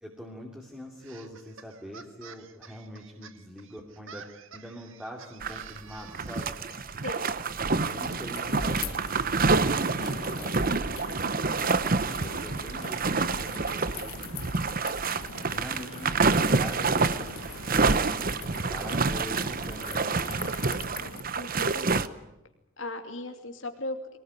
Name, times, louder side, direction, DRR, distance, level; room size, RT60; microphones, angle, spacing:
voice 1, 0.0-4.2 4.5-6.6 7.7-9.4 10.0-14.2 15.4-20.9, equal, 5° right, -2 dB, 2.8 m, -44 dB
sound 1, 1.0-6.5, right 6 dB, 65° right, 1.6 m, -50 dB
sound 2, 5.4-5.8 6.1-22.1, right 4 dB, 40° right, 0.9 m, -28 dB
voice 2, 7.0-7.7 21.4-22.0 22.8-24.2, left 2 dB, 60° left, 5 dB, 2.7 m, -38 dB
sound 3, 7.8-21.2, left 5 dB, 80° left, 1.2 m, -42 dB
23.5 x 19.0 x 9.8 m, 0.94 s
head